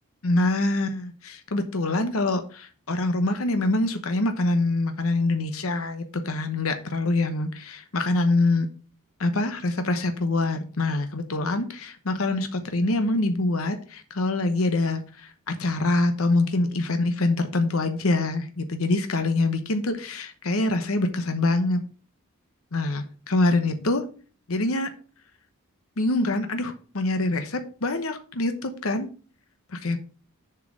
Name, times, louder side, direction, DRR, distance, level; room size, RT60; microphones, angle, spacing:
voice 1, 0.2-8.7 9.2-21.8 22.7-24.0 24.5-24.9 26.0-29.1 29.7-30.0, left 2 dB, 65° left, 8 dB, 1.0 m, -25 dB
7.2 x 4.7 x 6.1 m, 0.38 s
head